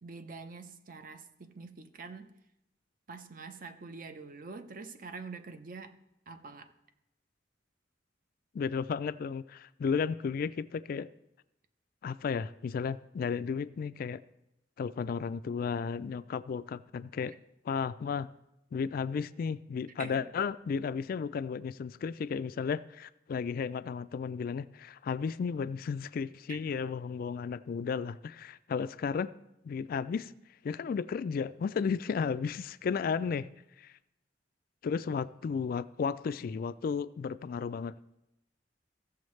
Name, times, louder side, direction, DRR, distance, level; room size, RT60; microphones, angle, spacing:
voice 1, 0.0-2.3 3.1-5.9 6.3-6.7 20.0-20.3 26.5-26.6, right 4 dB, 50° right, 0.7 m, -45 dB
voice 2, 8.5-11.1 12.0-14.2 14.8-17.3 17.6-18.3 18.7-29.3 29.6-30.3 30.6-33.5 33.8-33.9 34.8-37.9, left 6 dB, 55° left, 0.3 m, -33 dB
15.0 x 7.0 x 3.2 m
head